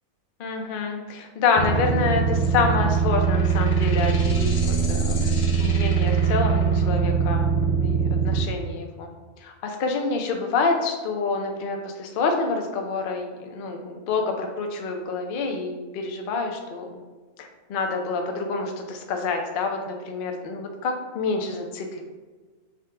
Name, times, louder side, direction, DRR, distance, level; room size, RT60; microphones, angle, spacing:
voice 1, 0.4-9.1 9.4-16.9 17.4-22.0, left 4 dB, 65° left, 3 dB, 0.5 m, -27 dB
sound 1, 1.6-8.4, right 6 dB, 85° left, 1.2 m, -22 dB
5.0 x 2.2 x 3.7 m, 1.3 s
omnidirectional pair, 1.6 m